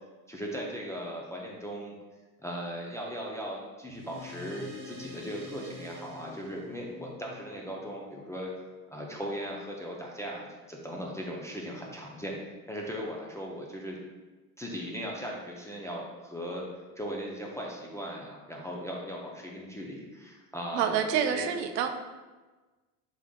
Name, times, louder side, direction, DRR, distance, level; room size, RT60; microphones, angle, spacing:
voice 1, 0.3-2.0 2.4-8.5 8.9-12.4 12.7-14.0 14.6-16.7 17.0-21.4, equal, 5° left, -3 dB, 0.4 m, -38 dB
sound 1, 3.9-8.7, left 2 dB, 40° right, 1.1 m, -46 dB
voice 2, 20.7-21.9, right 8 dB, 80° right, 6 dB, 0.5 m, -27 dB
3.6 x 3.5 x 2.3 m, 1.2 s
hypercardioid pair, 75°, 48 cm